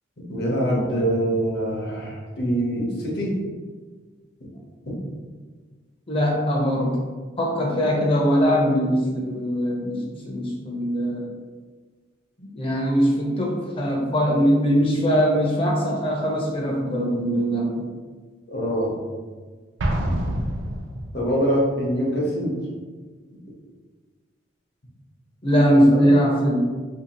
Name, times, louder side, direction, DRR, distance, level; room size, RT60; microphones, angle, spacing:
voice 1, 0.3-3.3 4.9-5.0 18.5-18.9 21.1-22.5 25.9-26.1, equal, 60° left, -3 dB, 0.8 m, -24 dB
voice 2, 6.1-7.0 7.4-11.3 12.5-17.8 25.4-26.6, equal, 30° left, -2 dB, 0.6 m, -21 dB
Explosion, 19.8-21.4, right 1 dB, 75° right, 0.4 m, -26 dB
2.8 x 2.7 x 2.8 m, 1.4 s
head